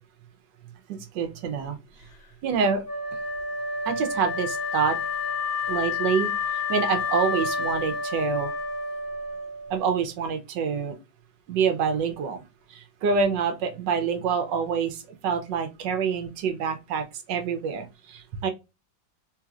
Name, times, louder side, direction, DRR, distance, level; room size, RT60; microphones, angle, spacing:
voice 1, 1.1-1.8 2.4-2.8 3.9-5.0 5.7-6.3 6.7-8.5 9.7-10.9 11.5-12.4 12.7-18.5, right 6 dB, 70° right, 1.4 m, -26 dB
Wind instrument woodwind instrument, 2.9-9.9, left 4 dB, 75° left, 2.0 m, -29 dB
3.9 x 3.0 x 2.4 m
omnidirectional pair, 2.1 m